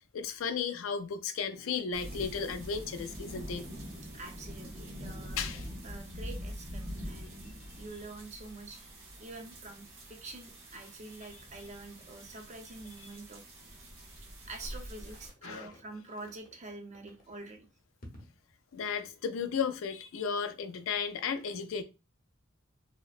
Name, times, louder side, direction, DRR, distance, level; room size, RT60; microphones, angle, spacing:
voice 1, 0.1-3.7 5.4-5.7 15.4-15.7 18.7-21.8, left 6 dB, 80° left, 0.4 m, -34 dB
sound 1, 1.9-15.3, equal, 80° right, 0.9 m, -44 dB
voice 2, 4.1-5.6 5.8-13.4 14.5-17.7, right 2 dB, 35° right, 0.6 m, -47 dB
sound 2, 14.6-15.4 15.7-16.6 16.9-17.3 18.0-18.4, equal, 45° left, 0.8 m, -53 dB
2.8 x 2.0 x 2.4 m
head